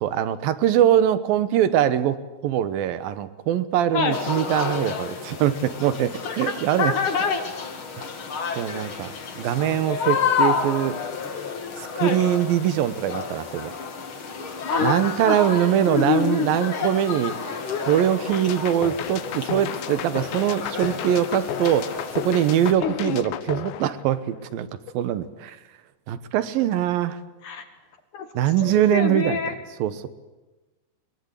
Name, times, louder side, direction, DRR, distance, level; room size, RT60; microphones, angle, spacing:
voice 1, 0.0-6.9 8.6-11.0 11.8-13.7 14.8-17.4 17.9-24.7 24.9-25.6 26.1-27.2 28.3-29.4 29.8-30.1, right 10 dB, 70° right, 13 dB, 2.6 m, -22 dB
sound 1, 4.1-22.7, left 6 dB, 40° left, 2.0 m, -31 dB
voice 2, 6.8-7.4 12.0-12.2 14.7-15.4 15.9-16.5 17.6-18.0 22.8-23.2 27.4-27.6 28.1-29.5, left 6 dB, 60° left, 6 dB, 2.4 m, -26 dB
sound 2, 18.3-24.5, left 12 dB, 90° left, 3.2 m, -34 dB
23.0 x 22.5 x 8.4 m, 1.1 s
omnidirectional pair, 4.8 m